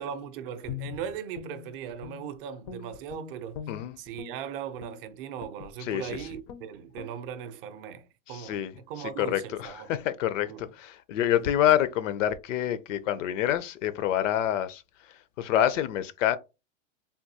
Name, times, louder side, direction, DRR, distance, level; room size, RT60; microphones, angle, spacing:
voice 1, 0.0-3.6 4.0-8.6 8.9-9.9 10.4-10.6, right 8 dB, 45° right, 0.5 m, -38 dB
Guitar, 0.6-2.4 2.6-4.4 4.8-5.0 5.4-5.7 6.1-6.2 6.5-6.7 6.9-7.2, left 9 dB, 35° left, 0.4 m, -41 dB
voice 2, 3.7-4.0 5.8-6.3 8.3-16.4, left 11 dB, 75° left, 0.6 m, -27 dB
3.5 x 2.3 x 2.7 m
supercardioid pair, 145°, 38 cm